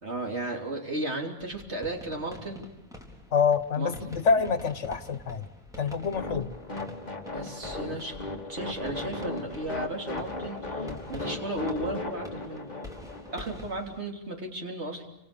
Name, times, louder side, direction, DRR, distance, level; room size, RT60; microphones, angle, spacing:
voice 1, 0.0-2.7 3.8-4.5 7.3-8.2 8.5-12.7 13.3-15.1, right 1 dB, 70° right, 2 dB, 3.8 m, -35 dB
sound 1, 1.4-14.0, left 1 dB, 5° right, 4.1 m, -47 dB
voice 2, 3.3-5.4 5.8-6.5, left 5 dB, 85° left, 12 dB, 1.6 m, -26 dB
sound 2, 6.1-13.6, left 2 dB, 35° left, 2.6 m, -36 dB
29.5 x 27.0 x 7.0 m, 0.92 s
omnidirectional pair, 1.2 m